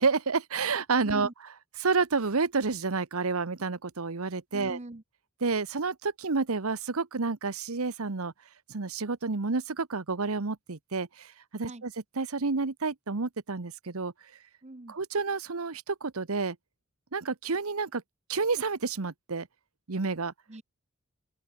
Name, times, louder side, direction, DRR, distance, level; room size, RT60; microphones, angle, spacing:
voice 1, 0.0-1.3 1.8-4.8 5.4-8.3 8.7-11.9 12.2-14.1 14.9-16.6 17.1-18.0 18.3-19.5 19.9-20.3, right 4 dB, 90° right, 1.1 m, -29 dB
voice 2, 1.0-1.3 4.5-5.0 11.6-11.8 14.6-15.0 20.5-20.6, right 1 dB, 30° right, 1.1 m, -41 dB
open air
head